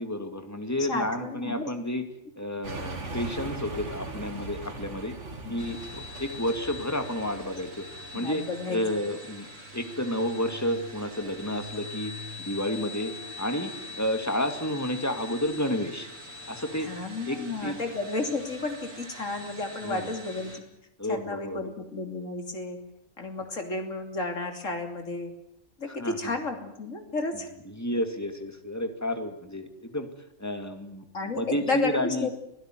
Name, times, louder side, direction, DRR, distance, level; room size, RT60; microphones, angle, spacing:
voice 1, 0.0-2.1 2.4-5.2 5.5-8.4 8.7-9.5 9.7-12.1 12.4-16.1 16.5-16.9 17.2-17.8 19.8-20.1 21.0-21.7 25.9-26.3 27.7-30.1 30.4-31.1 31.3-32.3, left 1 dB, 15° left, 7 dB, 2.6 m, -31 dB
voice 2, 0.9-1.7 5.4-5.6 8.1-8.8 16.8-20.6 21.1-22.8 23.2-25.3 25.8-27.5 31.1-32.3, left 3 dB, 90° left, 5 dB, 3.4 m, -32 dB
sound 1, 2.6-8.3, right 2 dB, 70° right, 3.1 m, -39 dB
sound 2, 5.6-20.6, left 1 dB, 90° right, 4.1 m, -43 dB
25.5 x 16.5 x 9.4 m, 0.80 s
omnidirectional pair, 1.3 m